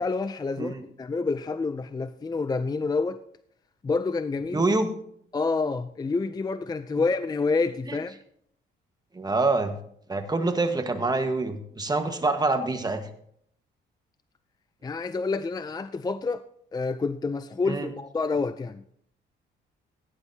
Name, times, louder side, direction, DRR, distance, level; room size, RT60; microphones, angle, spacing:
voice 1, 0.0-3.2 3.8-4.6 5.3-8.2 14.8-16.4 16.7-18.8, left 4 dB, 20° left, 0.4 m, -28 dB
voice 2, 4.5-4.9 7.9-8.0 9.1-9.8 10.1-13.1 17.7-17.9, right 3 dB, 20° right, 1.4 m, -26 dB
16.0 x 9.8 x 2.8 m
cardioid pair, 90°, 20 cm